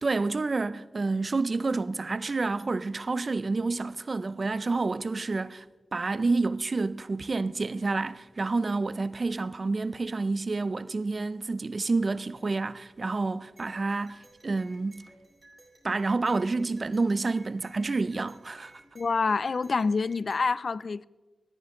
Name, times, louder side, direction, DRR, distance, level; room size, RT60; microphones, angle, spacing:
voice 1, 0.0-5.7 5.9-15.0 15.8-18.8, right 3 dB, 40° right, 0.6 m, -29 dB
sound 1, 13.6-20.4, right 1 dB, 20° right, 5.3 m, -57 dB
voice 2, 19.0-21.0, left 4 dB, 50° left, 0.3 m, -27 dB
19.5 x 14.0 x 3.8 m
wide cardioid pair, 115°, 0 cm